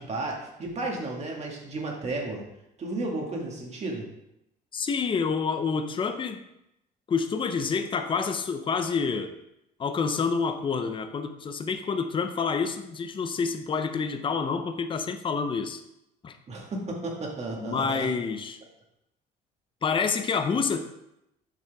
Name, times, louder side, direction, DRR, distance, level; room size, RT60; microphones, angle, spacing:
voice 1, 0.0-2.4 2.8-4.1 16.5-18.1, right 2 dB, 40° right, 0 dB, 1.9 m, -33 dB
voice 2, 4.7-6.4 7.1-9.3 9.8-15.8 16.2-16.4 17.6-18.6 19.8-20.9, left 5 dB, 30° left, 8 dB, 0.7 m, -28 dB
7.6 x 6.0 x 3.5 m, 0.84 s
cardioid pair, 110°, 17 cm